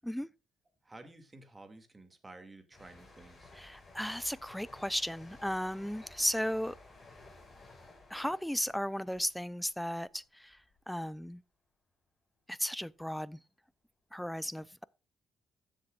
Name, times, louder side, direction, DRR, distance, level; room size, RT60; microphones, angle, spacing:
voice 1, 0.8-3.5, right 2 dB, 20° right, 2.3 m, -52 dB
sound 1, 2.7-10.2 10.5-10.8, left 2 dB, 30° left, 5.5 m, -56 dB
voice 2, 3.5-6.8 8.1-10.6 10.9-11.4 12.5-13.4 14.1-14.8, equal, 5° left, 0.5 m, -35 dB
14.5 x 7.5 x 2.4 m
cardioid pair, 90°, 0 cm